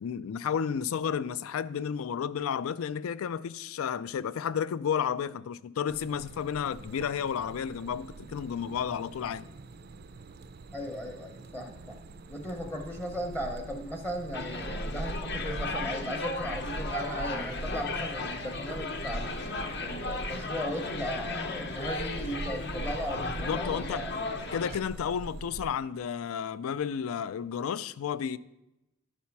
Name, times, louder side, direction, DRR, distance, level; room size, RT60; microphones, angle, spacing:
voice 1, 0.0-9.5 23.4-24.1 24.5-28.4, left 7 dB, 80° left, 0.3 m, -32 dB
sound 1, 5.9-25.7, right 2 dB, 45° right, 0.4 m, -42 dB
voice 2, 10.7-12.0 12.3-19.4 19.8-24.2, equal, 10° left, 0.7 m, -37 dB
sound 2, 14.3-24.7, left 3 dB, 50° left, 0.7 m, -35 dB
11.0 x 4.2 x 5.8 m
head